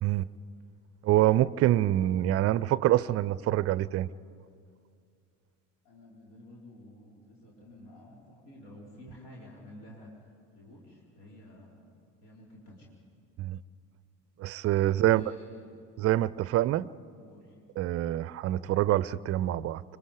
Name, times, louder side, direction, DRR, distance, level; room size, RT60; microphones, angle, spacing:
voice 1, 1.0-4.1 13.4-13.6 14.4-15.2 16.0-16.9 17.8-19.8, right 14 dB, 30° right, 0.5 m, -26 dB
voice 2, 5.8-11.8 12.2-12.9 14.9-15.6 17.2-17.6, left 1 dB, 70° left, 3.9 m, -51 dB
26.0 x 22.5 x 5.0 m
figure-of-eight pair, 55°, 47 cm